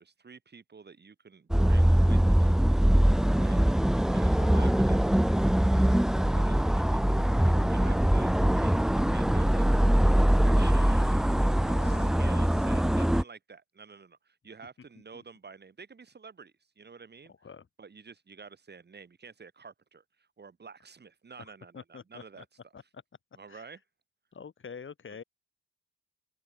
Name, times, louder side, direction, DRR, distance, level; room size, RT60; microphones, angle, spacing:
voice 1, 0.0-2.6 3.3-3.6 4.1-5.0 6.3-17.3 17.8-22.7 23.4-23.8, right 5 dB, 35° right, 3.5 m, -49 dB
sound 1, 1.5-13.2, equal, ahead, 0.4 m, -23 dB
voice 2, 11.6-12.4 15.1-15.2 17.3-17.7 21.4-22.4 22.7-22.8 23.5-23.7 24.3-25.2, left 6 dB, 40° left, 5.8 m, -47 dB
open air
cardioid pair, 90°, 30 cm